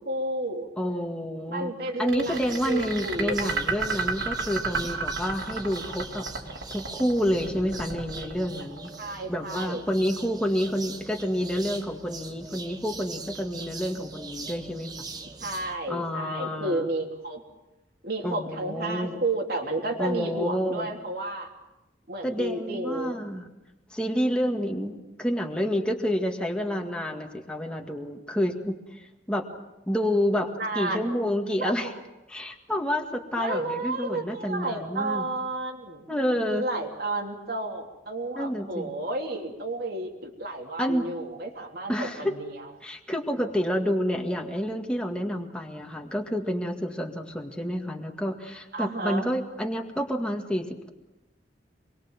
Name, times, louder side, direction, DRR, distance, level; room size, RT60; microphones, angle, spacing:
voice 1, 0.0-0.7 1.5-3.6 9.0-9.8 15.4-17.4 18.0-21.5 22.1-23.2 30.6-31.1 31.6-31.7 33.4-42.7 48.7-49.3, right 2 dB, 55° right, 2 dB, 3.6 m, -32 dB
voice 2, 0.8-1.7 2.0-6.3 6.7-8.9 9.3-14.9 15.9-16.9 18.2-19.1 20.0-20.9 22.2-23.5 23.9-29.5 29.9-31.9 32.3-35.3 36.1-36.7 38.4-38.9 40.8-41.1 41.9-42.3 42.8-50.9, equal, 5° left, 2 dB, 2.0 m, -29 dB
sound 1, 2.1-9.2, right 4 dB, 75° right, 4.5 m, -32 dB
sound 2, 2.2-15.8, right 3 dB, 20° right, 1.3 m, -41 dB
26.5 x 22.5 x 7.4 m, 1.0 s
head